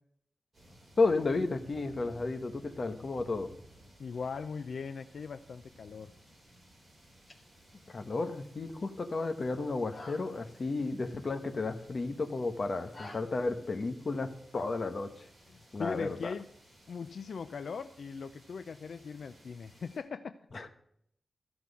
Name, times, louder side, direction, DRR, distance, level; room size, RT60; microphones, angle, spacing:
sound 1, 0.5-20.0, right 1 dB, 30° right, 5.9 m, -58 dB
voice 1, 1.0-3.5 7.9-15.3 15.7-16.2 20.5-20.7, left 3 dB, 45° left, 7 dB, 1.1 m, -32 dB
voice 2, 4.0-6.1 15.5-16.5 16.9-20.3, left 5 dB, 75° left, 10 dB, 0.5 m, -40 dB
sound 2, 7.0-13.2, left 2 dB, 25° left, 2.0 m, -55 dB
14.0 x 6.0 x 8.2 m, 0.70 s
wide cardioid pair, 155°, 0 cm